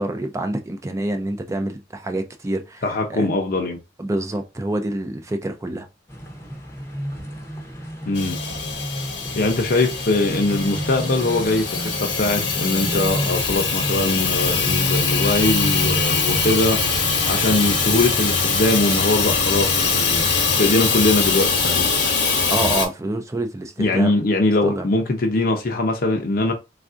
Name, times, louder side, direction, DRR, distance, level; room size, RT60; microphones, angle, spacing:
voice 1, 0.0-3.3 4.0-5.9 22.5-24.1 24.6-24.9, right 1 dB, 15° right, 0.3 m, -27 dB
voice 2, 2.8-3.8 8.1-8.4 9.3-16.8 17.3-20.2 20.6-21.9 23.8-26.5, left 2 dB, 50° left, 0.6 m, -21 dB
sound 1, 6.1-20.8, right 1 dB, 15° left, 0.7 m, -31 dB
Hiss / Toilet flush / Trickle dribble, 8.2-22.9, left 5 dB, 70° left, 0.9 m, -22 dB
3.4 x 2.4 x 2.4 m
head